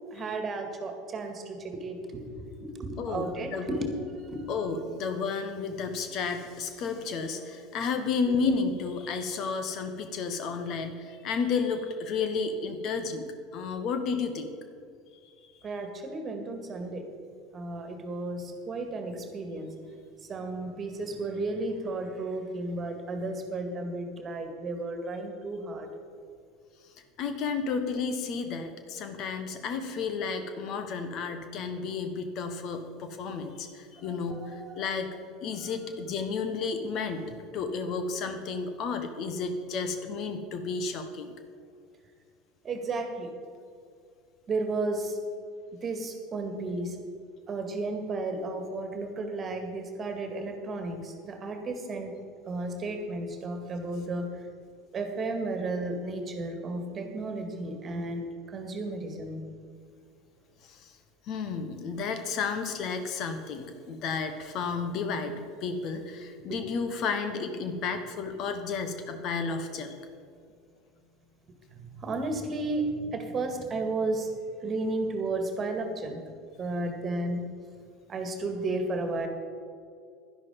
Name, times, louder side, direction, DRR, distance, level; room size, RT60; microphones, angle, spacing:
voice 1, 0.1-4.5 15.6-17.0 17.5-19.7 20.3-25.9 34.0-34.8 42.6-43.3 44.5-45.2 45.8-47.0 47.5-52.1 52.5-54.3 54.9-59.4 66.5-66.6 71.7-74.3 74.6-76.2 76.6-77.5 78.1-79.3, right 2 dB, 30° right, 6 dB, 1.9 m, -33 dB
voice 2, 3.0-3.7 4.5-13.3 13.5-14.5 27.2-35.1 35.4-41.3 60.7-60.9 61.3-70.0, left 5 dB, 50° left, 8 dB, 1.2 m, -32 dB
11.5 x 11.0 x 5.3 m, 2.3 s
figure-of-eight pair, 75°, 0 cm